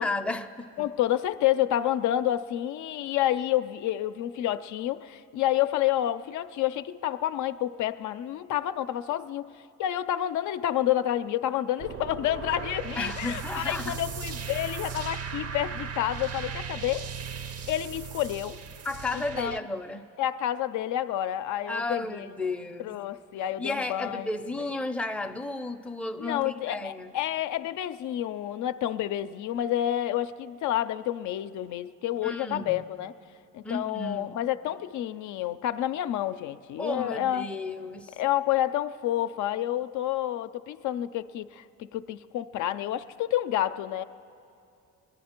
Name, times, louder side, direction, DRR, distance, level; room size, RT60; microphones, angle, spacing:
voice 1, 0.0-0.9 13.0-14.0 18.8-20.0 21.7-22.9 23.6-27.1 32.2-32.8 33.6-34.4 36.8-38.1, left 2 dB, 5° left, 0.5 m, -33 dB
voice 2, 0.8-9.5 9.8-17.1 17.7-18.6 19.1-19.6 20.2-22.3 22.8-24.3 26.2-33.1 33.5-37.5 38.2-44.0, left 12 dB, 75° left, 0.5 m, -29 dB
sound 1, 11.8-19.6, right 6 dB, 55° right, 0.7 m, -37 dB
23.0 x 10.5 x 4.4 m
cardioid pair, 90°, 30 cm